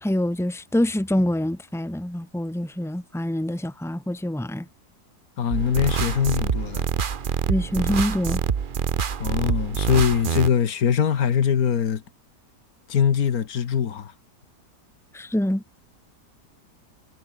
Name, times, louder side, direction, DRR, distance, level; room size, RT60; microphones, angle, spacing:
voice 1, 0.0-4.7 7.5-8.4 15.1-15.6, left 1 dB, ahead, 2.2 m, -25 dB
voice 2, 5.4-6.9 9.2-12.0 12.9-14.1, left 8 dB, 60° left, 1.7 m, -22 dB
sound 1, 5.5-10.5, right 7 dB, 40° right, 0.8 m, -26 dB
omnidirectional pair, 1.8 m